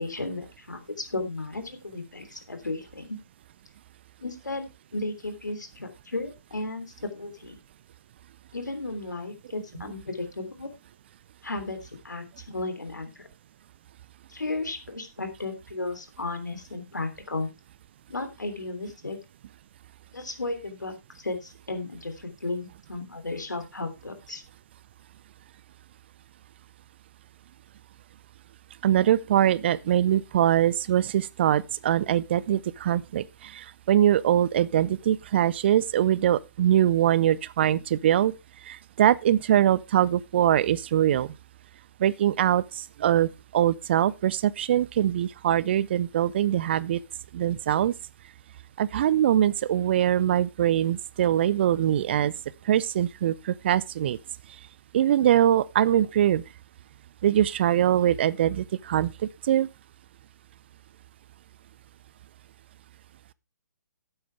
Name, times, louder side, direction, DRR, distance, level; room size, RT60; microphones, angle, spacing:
voice 1, 0.0-3.2 4.2-7.6 8.5-10.7 11.4-13.3 14.3-17.5 18.1-19.2 20.1-24.4, left 2 dB, 80° left, 3.2 m, -34 dB
voice 2, 28.8-38.3 38.7-41.3 42.0-47.0 47.3-47.9 48.8-52.3 52.7-54.2 54.9-56.4 57.2-59.1 59.4-59.7, right 11 dB, 35° right, 0.5 m, -23 dB
12.5 x 8.9 x 3.4 m
figure-of-eight pair, 135°, 10 cm